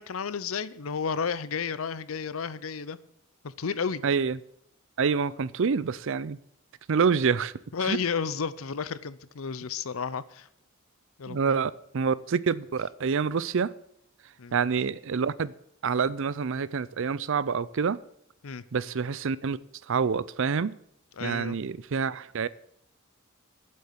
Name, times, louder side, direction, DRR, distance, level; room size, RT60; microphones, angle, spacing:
voice 1, 0.0-3.0 3.4-4.0 7.7-10.5 11.2-11.5 14.4-14.6 18.4-18.6 21.2-21.6, left 6 dB, 70° left, 17 dB, 0.6 m, -32 dB
voice 2, 4.0-4.4 5.0-6.4 6.9-7.5 7.8-8.0 11.3-13.7 14.5-15.5 15.8-18.0 18.7-19.6 19.9-20.7 21.2-22.5, right 5 dB, 65° right, 18 dB, 0.5 m, -27 dB
8.6 x 7.8 x 9.1 m, 0.71 s
head